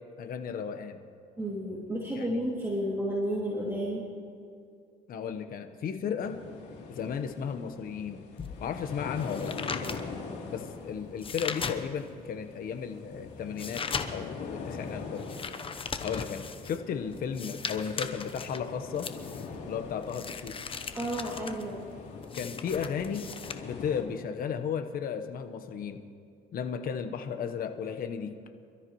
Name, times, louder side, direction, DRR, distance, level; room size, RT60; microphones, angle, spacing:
voice 1, 0.2-1.0 2.2-2.4 5.1-6.4 6.9-8.2 8.6-9.6 10.5-13.8 14.1-15.2 16.0-19.1 19.7-20.6 22.3-23.3 23.6-26.0 26.5-28.3, left 7 dB, 60° left, 7 dB, 1.2 m, -34 dB
voice 2, 1.4-4.0 20.9-21.8, equal, 15° right, -5 dB, 2.7 m, -32 dB
sound 1, 6.2-24.0, left 4 dB, 85° left, 3.3 m, -43 dB
sound 2, 8.4-12.2 12.7-23.5, left 5 dB, 30° left, 1.0 m, -39 dB
27.0 x 13.5 x 3.2 m, 2.4 s
cardioid pair, 110°, 17 cm